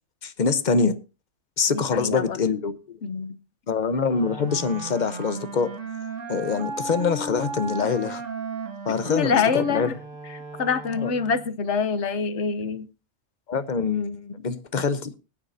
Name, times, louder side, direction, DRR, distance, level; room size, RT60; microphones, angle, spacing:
voice 1, 0.2-0.9 1.6-3.0 3.7-5.7 6.3-8.2 8.9-9.9 11.0-11.1 13.5-15.1, left 5 dB, 40° left, 0.9 m, -25 dB
voice 2, 1.7-2.4 3.0-3.4 9.1-9.9 10.3-12.9, left 6 dB, 65° left, 1.1 m, -25 dB
Wind instrument woodwind instrument, 4.1-11.6, right 4 dB, 80° right, 2.0 m, -35 dB
20.5 x 9.9 x 2.6 m
omnidirectional pair, 1.3 m